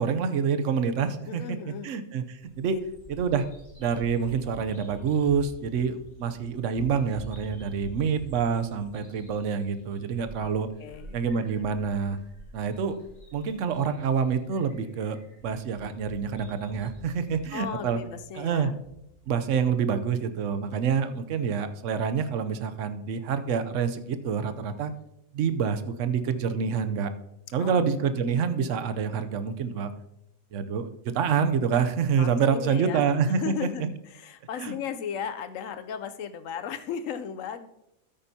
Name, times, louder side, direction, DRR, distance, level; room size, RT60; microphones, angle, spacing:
voice 1, 0.0-2.8 3.1-3.5 3.8-10.7 11.1-12.2 12.5-13.0 13.3-15.2 15.4-18.0 18.4-18.7 19.3-24.9 25.3-27.1 27.5-29.9 30.5-33.5 33.8-33.9 34.6-34.7, right 6 dB, 65° right, 10 dB, 1.0 m, -27 dB
voice 2, 1.3-1.9 2.7-2.8 10.4-10.5 10.8-11.2 17.5-18.8 27.6-28.8 32.2-37.7, left 8 dB, 70° left, 11 dB, 1.0 m, -36 dB
Bird vocalization bird call bird song, 2.4-20.5, equal, 35° left, 2.7 m, -48 dB
13.0 x 8.8 x 2.8 m, 0.84 s
omnidirectional pair, 1.4 m